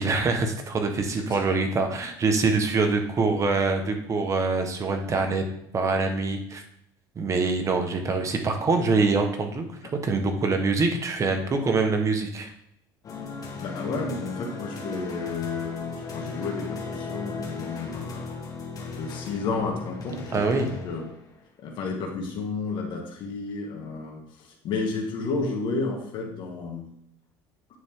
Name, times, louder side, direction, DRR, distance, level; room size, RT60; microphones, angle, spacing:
voice 1, 0.0-5.4 5.7-6.6 7.1-9.6 9.9-12.5 20.3-20.7, right 3 dB, 30° right, 5 dB, 1.4 m, -24 dB
sound 1, 13.0-21.4, left 4 dB, 40° left, 1.7 m, -36 dB
voice 2, 13.6-18.4 19.0-21.1 21.6-26.9, left 4 dB, 55° left, 1 dB, 1.8 m, -32 dB
9.6 x 4.2 x 3.8 m, 0.76 s
supercardioid pair, 105°, 10 cm